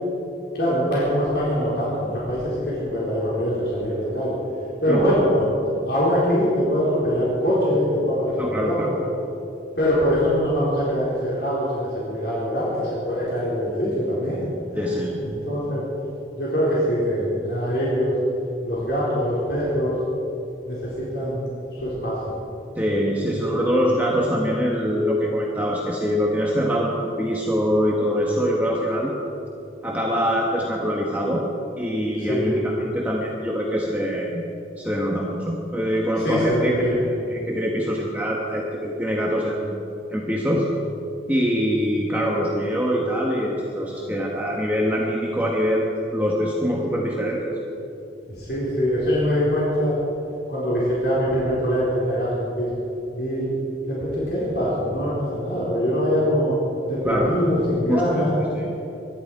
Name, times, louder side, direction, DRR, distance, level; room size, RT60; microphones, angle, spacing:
voice 1, 0.5-4.4 4.8-5.5 5.8-9.0 9.8-14.5 14.7-14.9 15.2-15.8 16.4-18.2 18.6-20.0 20.6-22.4 32.3-32.6 36.2-37.0 48.3-49.9 50.5-52.7 53.2-53.5 53.9-56.5 56.9-58.3, equal, 60° left, -8 dB, 4.2 m, -23 dB
voice 2, 8.4-8.9 14.7-15.2 22.7-29.1 29.8-31.4 31.8-34.4 34.8-37.0 37.3-39.8 40.1-40.7 41.3-47.6 57.0-57.3 57.9-58.3 58.5-58.7, equal, 10° right, -3 dB, 1.2 m, -24 dB
23.5 x 11.5 x 4.8 m, 2.9 s
head